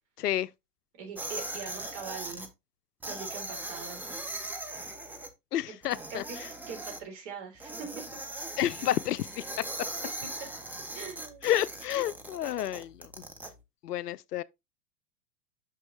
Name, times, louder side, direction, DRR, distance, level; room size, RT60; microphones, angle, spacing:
voice 1, 0.2-0.5 5.5-6.5 8.6-9.5 11.4-13.2 13.8-14.4, left 12 dB, 75° left, 0.5 m, -30 dB
voice 2, 1.0-2.5 3.1-4.1 6.1-6.4 6.7-8.3 10.9-11.5, right 5 dB, 50° right, 3.5 m, -42 dB
sound 1, 1.2-2.5 3.0-5.3 5.8-7.0 7.6-13.5, right 2 dB, 5° right, 0.5 m, -39 dB
6.1 x 6.0 x 3.1 m
figure-of-eight pair, 95°, 48 cm